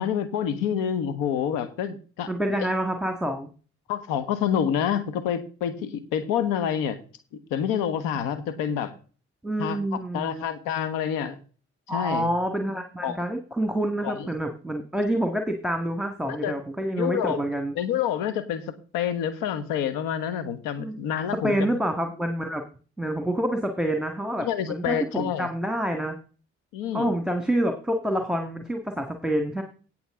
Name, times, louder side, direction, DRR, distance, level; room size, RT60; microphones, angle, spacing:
voice 1, 0.0-2.3 3.9-7.0 7.5-8.9 9.6-11.4 11.9-12.3 13.0-13.2 14.0-14.3 16.3-16.5 17.0-17.4 17.7-18.6 18.9-21.8 24.4-25.5 26.7-27.2, left 9 dB, 75° left, 11 dB, 1.6 m, -28 dB
voice 2, 2.3-3.5 9.4-10.4 11.9-17.7 20.8-21.0 21.4-22.6 23.0-26.2 26.9-29.6, right 1 dB, ahead, 5 dB, 1.9 m, -27 dB
17.5 x 6.9 x 3.8 m, 0.38 s
hypercardioid pair, 40°, 34 cm